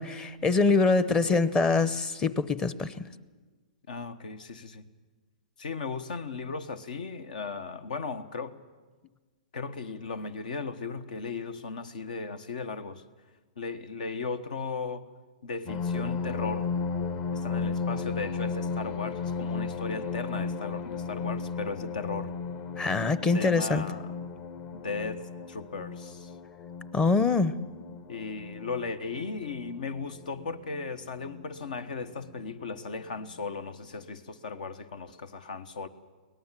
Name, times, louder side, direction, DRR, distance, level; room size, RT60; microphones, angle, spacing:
voice 1, 0.0-3.0 22.8-23.8 26.9-27.6, left 3 dB, 15° left, 16 dB, 0.8 m, -24 dB
voice 2, 3.9-4.9 5.6-8.6 9.5-13.0 13.6-15.0 15.4-16.7 17.3-22.3 23.0-24.1 24.7-26.3 28.1-35.9, left 4 dB, 75° left, 13 dB, 1.2 m, -36 dB
sound 1, 15.7-32.7 33.3-33.4 33.8-34.1, left 5 dB, 40° left, 1.2 m, -35 dB
23.5 x 18.5 x 7.5 m, 1.3 s
hypercardioid pair, 135°, 4 cm